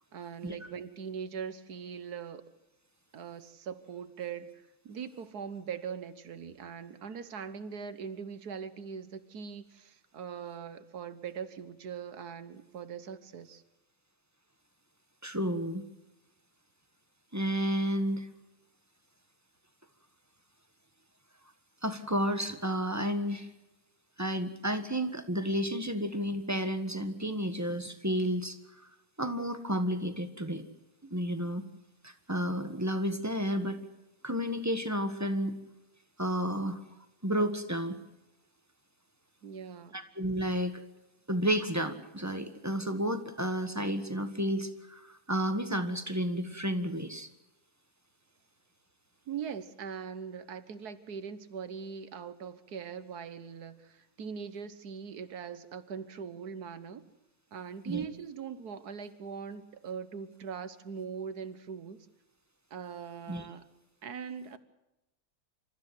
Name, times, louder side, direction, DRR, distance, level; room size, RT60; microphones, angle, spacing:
voice 1, 0.1-2.4 3.1-13.6 39.4-40.0 49.3-57.0 57.5-62.1 62.7-63.7 64.0-64.6, right 7 dB, 75° right, 13 dB, 1.7 m, -41 dB
voice 2, 15.2-15.8 17.3-18.3 21.8-23.5 24.2-28.6 29.2-30.6 31.0-31.6 32.0-33.8 34.2-35.5 36.2-36.8 37.2-38.0 39.9-40.8 41.3-47.3 57.9-58.0 63.3-63.4, equal, 10° right, 8 dB, 1.5 m, -31 dB
27.5 x 14.0 x 7.7 m, 0.96 s
omnidirectional pair, 1.6 m